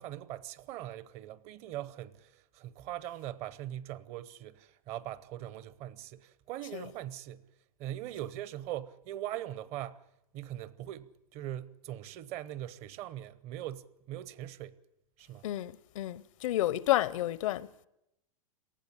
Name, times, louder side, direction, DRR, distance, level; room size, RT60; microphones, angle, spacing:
voice 1, 0.0-7.5 7.8-10.1 10.3-14.8 15.2-15.5, right 13 dB, 35° right, 0.8 m, -41 dB
voice 2, 15.4-17.7, left 14 dB, 65° left, 0.8 m, -30 dB
19.0 x 14.0 x 10.0 m
hypercardioid pair, 140°, 18 cm